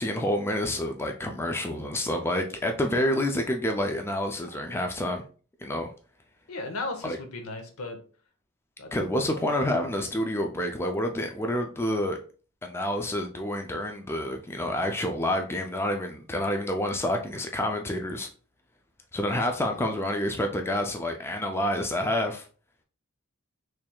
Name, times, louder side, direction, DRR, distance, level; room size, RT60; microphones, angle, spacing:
voice 1, 0.0-5.2 5.6-5.9 7.0-7.2 8.9-12.2 12.6-18.3 19.1-22.5, left 1 dB, 10° left, 3 dB, 0.3 m, -28 dB
voice 2, 6.5-8.0 8.8-9.1 9.3-10.0, left 2 dB, 70° left, 5 dB, 0.9 m, -37 dB
4.4 x 3.2 x 2.3 m, 0.39 s
head